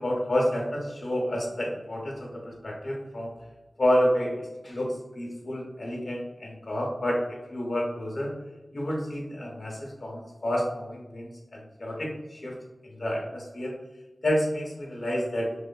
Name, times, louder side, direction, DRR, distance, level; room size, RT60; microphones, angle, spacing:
voice 1, 0.0-3.3 3.8-8.3 8.7-12.6 12.8-13.8 14.2-15.5, equal, 65° left, -2 dB, 0.8 m, -29 dB
3.0 x 2.1 x 2.2 m, 1.1 s
wide cardioid pair, 60°, 0 cm